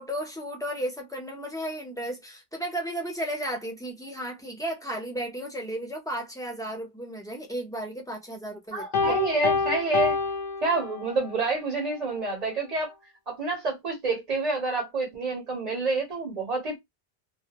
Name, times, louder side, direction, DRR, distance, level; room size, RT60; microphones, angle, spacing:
voice 1, 0.0-9.2, right 1 dB, 5° left, 0.5 m, -34 dB
voice 2, 8.7-10.1 10.6-12.9 13.3-16.8, right 3 dB, 40° right, 0.8 m, -28 dB
Piano, 8.9-11.3, left 5 dB, 55° left, 0.7 m, -27 dB
2.3 x 2.2 x 2.8 m
omnidirectional pair, 1.1 m